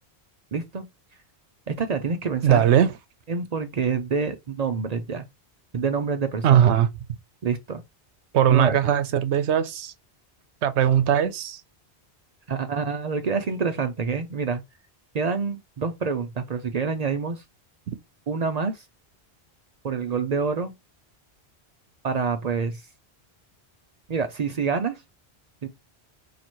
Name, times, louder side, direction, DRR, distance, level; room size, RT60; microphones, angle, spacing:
voice 1, 0.5-0.9 1.7-2.6 3.3-5.2 5.7-6.7 7.4-7.8 8.5-8.8 12.5-14.6 15.1-17.4 18.3-18.8 19.8-20.7 22.0-22.8 24.1-25.0 25.6-25.7, right 5 dB, 50° right, 0.5 m, -27 dB
voice 2, 2.4-2.9 6.4-6.9 8.3-9.9 10.6-11.6, right 9 dB, 85° right, 0.9 m, -19 dB
2.9 x 2.9 x 4.2 m
omnidirectional pair, 1.1 m